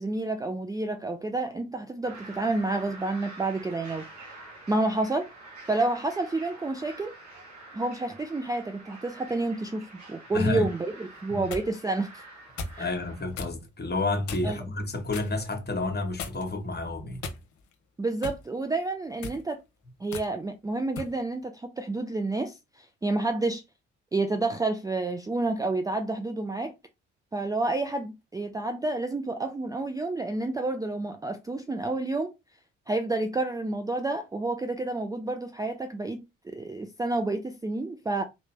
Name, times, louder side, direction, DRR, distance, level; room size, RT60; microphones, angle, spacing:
voice 1, 0.0-4.1 4.7-5.3 5.7-7.1 7.7-12.2 12.8-12.9 14.4-14.6 18.0-19.6 20.0-23.6 24.1-26.7 27.3-32.3 32.9-38.2, right 2 dB, 10° right, 0.5 m, -29 dB
sound 1, 2.0-13.2, right 2 dB, 50° right, 1.6 m, -47 dB
voice 2, 10.3-10.7 11.3-11.5 12.8-17.2, left 2 dB, 25° left, 1.4 m, -30 dB
sound 2, 11.1-11.7 12.6-12.8 13.3-13.6 14.3-14.6 15.1-15.4 16.2-16.6 17.2-17.7 18.2-18.5 19.1-19.4 20.1-20.3 21.0-21.2, left 4 dB, 55° left, 0.9 m, -37 dB
3.9 x 3.2 x 3.2 m
figure-of-eight pair, 40°, 36 cm